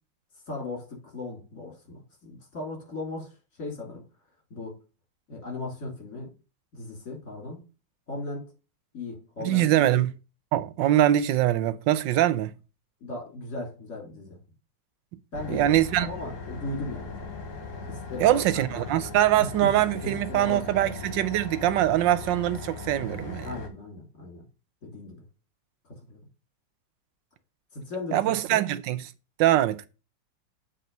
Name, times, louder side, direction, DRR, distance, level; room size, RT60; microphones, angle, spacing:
voice 1, 0.5-3.3 3.6-4.0 4.5-4.7 5.3-6.3 6.7-7.6 8.1-8.4 8.9-10.0 13.0-14.4 15.3-15.7 16.0-17.3 17.9-18.4 19.6-19.7 20.0-20.7 23.4-24.4 24.8-25.2 26.1-26.2 27.7-28.7, left 2 dB, 45° left, 3.4 m, -37 dB
voice 2, 9.4-10.1 10.5-12.5 15.5-16.1 18.2-23.5 28.1-29.1 29.4-29.9, right 13 dB, 85° right, 1.3 m, -23 dB
sound 1, 15.3-23.7, left 3 dB, 65° left, 1.9 m, -39 dB
7.6 x 4.1 x 5.2 m
omnidirectional pair, 2.0 m